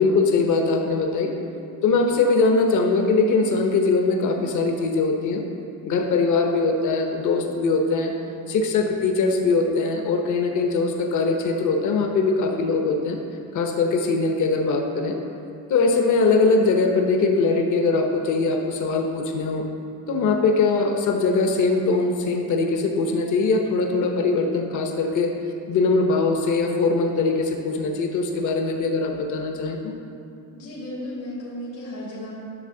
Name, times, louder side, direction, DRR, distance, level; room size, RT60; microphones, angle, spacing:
voice 1, 0.0-1.3 1.8-5.4 5.8-8.1 8.5-13.2 13.5-15.2 15.7-19.7 20.1-25.3 25.7-29.9, left 3 dB, 65° left, 3 dB, 0.9 m, -21 dB
voice 2, 30.5-32.3, left 1 dB, 85° left, -7 dB, 2.3 m, -34 dB
11.5 x 6.4 x 3.9 m, 2.6 s
cardioid pair, 145°, 32 cm